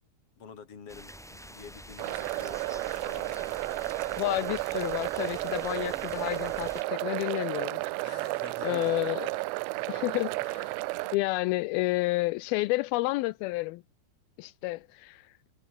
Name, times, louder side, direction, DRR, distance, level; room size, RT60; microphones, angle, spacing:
voice 1, 0.4-3.6 8.0-9.0 9.8-10.1, left 6 dB, 35° left, 3.9 m, -48 dB
sound 1, 0.9-6.8, equal, ahead, 6.5 m, -46 dB
sound 2, 2.0-11.2, right 22 dB, 90° right, 2.9 m, -33 dB
voice 2, 4.2-7.8 8.6-9.5 9.9-10.8 11.1-13.8 14.4-15.3, left 21 dB, 85° left, 2.2 m, -30 dB
omnidirectional pair, 4.9 m